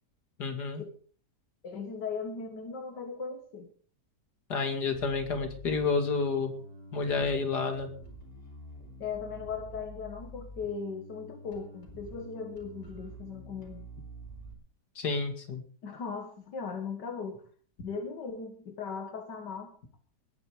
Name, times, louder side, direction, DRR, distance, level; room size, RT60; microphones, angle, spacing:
voice 1, 0.4-0.8 4.5-6.5 6.9-7.9 15.0-15.6, left 4 dB, 75° left, 6 dB, 2.9 m, -30 dB
voice 2, 1.6-3.7 9.0-13.9 15.8-17.4 17.8-19.7, left 5 dB, 90° left, 5 dB, 2.3 m, -38 dB
Bass guitar, 4.9-14.5, right 1 dB, 40° left, 4.5 m, -48 dB
20.0 x 9.6 x 5.0 m, 0.43 s
omnidirectional pair, 1.8 m